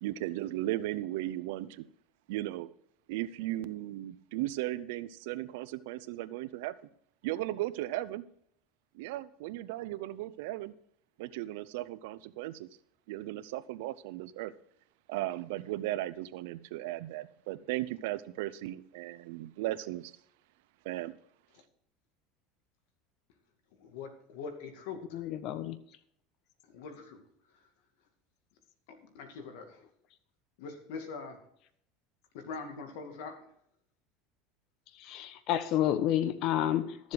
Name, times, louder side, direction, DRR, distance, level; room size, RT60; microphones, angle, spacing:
voice 1, 0.0-1.9 2.3-2.7 3.1-6.7 7.2-8.3 8.9-10.7 11.2-12.7 13.1-14.5 15.1-20.1 20.8-21.1, right 15 dB, 80° right, 15 dB, 0.6 m, -36 dB
voice 2, 23.8-25.2 26.7-27.2 29.0-29.8 30.6-31.4 32.3-33.3, left 5 dB, 80° left, 6 dB, 2.4 m, -43 dB
voice 3, 25.1-25.8 35.0-37.1, left 11 dB, 55° left, 12 dB, 1.0 m, -30 dB
13.0 x 7.4 x 4.8 m, 0.68 s
supercardioid pair, 130°, 0 cm